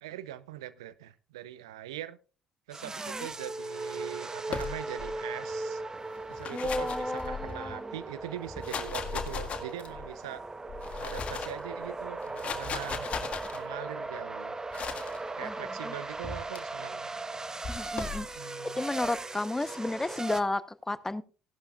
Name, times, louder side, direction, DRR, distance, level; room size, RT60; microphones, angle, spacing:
voice 1, 0.0-2.2 2.7-5.8 6.3-10.4 11.0-13.1 13.5-14.5 15.4-17.1 18.2-18.8, right 13 dB, 80° right, 0.7 m, -42 dB
sound 1, 2.7-20.4, right 3 dB, 20° right, 0.9 m, -38 dB
sound 2, 4.5-5.1 6.2-7.7 8.4-10.1 10.7-11.6 12.2-13.6 14.7-15.2 16.2-16.6 17.6-18.2, left 6 dB, 45° left, 1.9 m, -37 dB
voice 2, 6.5-7.9 15.4-15.5 15.8-15.9 17.7-18.4 18.8-21.2, left 2 dB, 15° left, 0.8 m, -33 dB
16.5 x 11.5 x 2.4 m
hypercardioid pair, 55°, 3 cm